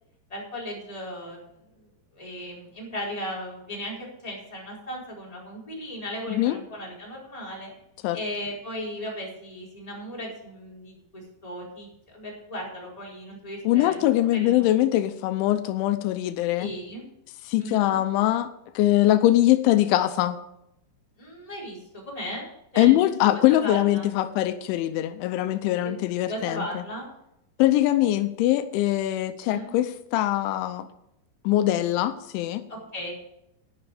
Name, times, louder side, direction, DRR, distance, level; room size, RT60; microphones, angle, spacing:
voice 1, 0.3-1.9 2.1-7.7 8.1-14.7 16.6-17.0 17.6-18.0 21.2-22.4 22.7-24.1 25.8-25.9 26.2-27.1 29.5-29.7 32.7-33.1, equal, 10° left, -4 dB, 3.7 m, -36 dB
voice 2, 13.7-16.7 17.5-20.4 22.8-26.8 27.6-30.9 31.4-32.6, left 14 dB, 85° left, 11 dB, 3.1 m, -22 dB
11.0 x 11.0 x 4.9 m, 0.82 s
omnidirectional pair, 5.3 m